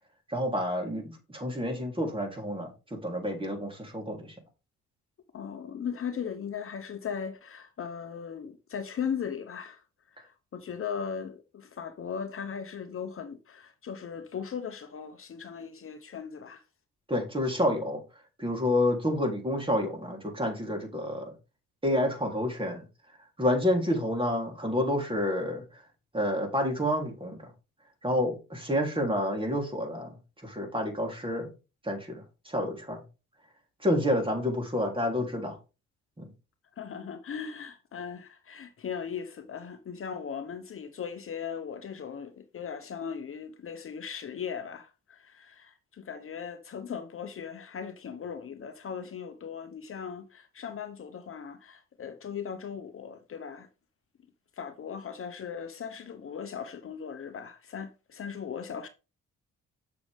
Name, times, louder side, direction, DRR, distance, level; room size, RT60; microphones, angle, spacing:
voice 1, 0.3-4.3 17.1-18.0 18.4-21.3 21.8-22.8 23.4-25.8 26.1-27.5 28.0-30.1 30.4-31.5 31.8-33.0 33.8-35.6 36.2-36.3, left 1 dB, 15° right, 3.5 m, -29 dB
voice 2, 5.3-9.8 10.1-16.6 36.8-53.7 54.6-58.9, left 7 dB, 45° left, 1.0 m, -38 dB
7.8 x 6.8 x 3.6 m
cardioid pair, 90°, 30 cm